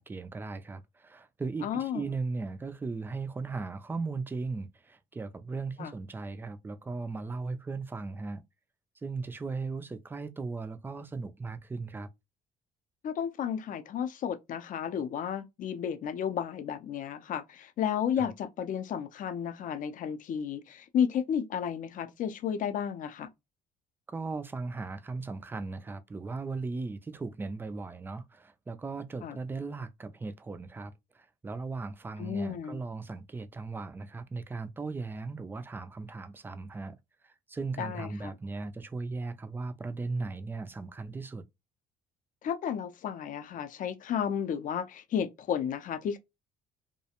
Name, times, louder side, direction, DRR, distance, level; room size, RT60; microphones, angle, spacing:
voice 1, 0.0-8.4 9.0-12.1 18.2-18.3 24.1-37.0 37.2-41.4, right 3 dB, 10° right, 0.3 m, -37 dB
voice 2, 1.6-2.0 5.8-5.9 13.0-23.3 29.2-29.4 32.2-32.8 37.8-38.3 42.4-46.2, left 8 dB, 50° left, 0.5 m, -32 dB
2.4 x 2.1 x 2.8 m
cardioid pair, 110°, 17 cm